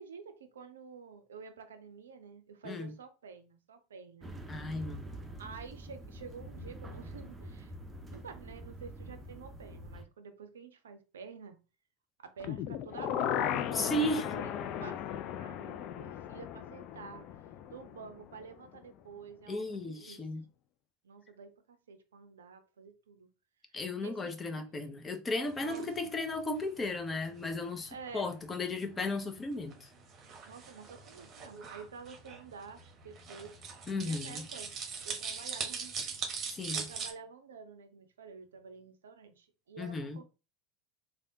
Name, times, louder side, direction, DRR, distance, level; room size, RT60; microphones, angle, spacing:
voice 1, 0.0-4.3 5.4-7.7 8.1-11.6 12.2-17.3 17.7-20.4 21.0-23.3 23.9-24.7 25.6-26.1 27.9-28.3 30.5-34.7 35.0-40.2, right 6 dB, 80° right, 0.5 m, -50 dB
sound 1, 4.2-10.0, right 1 dB, 15° right, 0.7 m, -46 dB
voice 2, 4.5-5.1 13.7-14.3 19.5-20.4 23.7-29.9 33.9-34.5 36.5-36.9 39.8-40.2, left 2 dB, 20° left, 0.7 m, -35 dB
sound 2, 12.4-18.4 18.7-18.8, left 10 dB, 50° left, 0.3 m, -36 dB
sound 3, 25.4-37.1, right 5 dB, 35° right, 1.0 m, -42 dB
3.4 x 2.2 x 2.7 m
hypercardioid pair, 85°, 0 cm